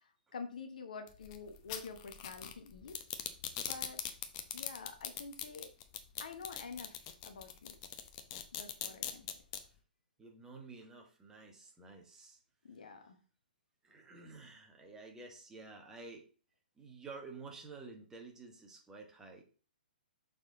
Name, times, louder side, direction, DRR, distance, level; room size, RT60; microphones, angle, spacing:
voice 1, 0.3-3.0 3.7-4.0 4.5-5.7 6.2-7.8 8.5-9.3 12.6-13.2, left 5 dB, 60° left, 6 dB, 1.2 m, -47 dB
sound 1, 1.1-9.6, left 9 dB, 35° left, 0.8 m, -41 dB
voice 2, 8.8-9.2 10.2-12.4 12.8-12.9 13.8-16.2 16.8-19.4, right 3 dB, 10° right, 1 dB, 1.4 m, -51 dB
6.5 x 4.3 x 3.8 m, 0.38 s
figure-of-eight pair, 120°, 5 cm